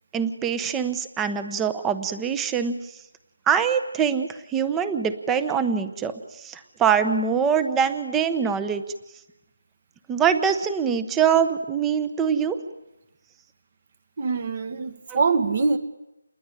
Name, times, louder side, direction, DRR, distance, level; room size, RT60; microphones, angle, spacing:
voice 1, 0.1-2.7 3.5-8.8 10.1-12.6 15.1-15.2, right 7 dB, 5° right, 11 dB, 1.0 m, -24 dB
voice 2, 14.2-15.8, right 4 dB, 35° right, 12 dB, 1.6 m, -23 dB
28.5 x 21.0 x 9.9 m, 0.96 s
figure-of-eight pair, 170°, 0 cm